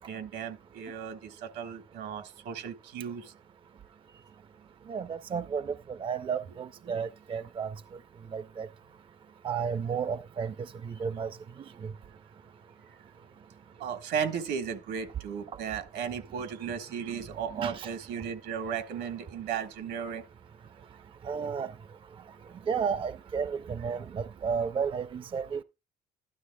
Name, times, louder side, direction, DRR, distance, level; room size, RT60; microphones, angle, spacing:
voice 1, 0.1-3.3 6.8-7.0 13.8-20.2, right 7 dB, 80° right, 1.4 m, -35 dB
voice 2, 4.9-5.7 6.0-7.7 8.3-8.7 9.4-10.5 10.8-11.3 17.5-17.9 21.2-21.7 22.7-25.6, right 6 dB, 30° right, 0.4 m, -32 dB
12.5 x 11.5 x 2.2 m
cardioid pair, 110°, 17 cm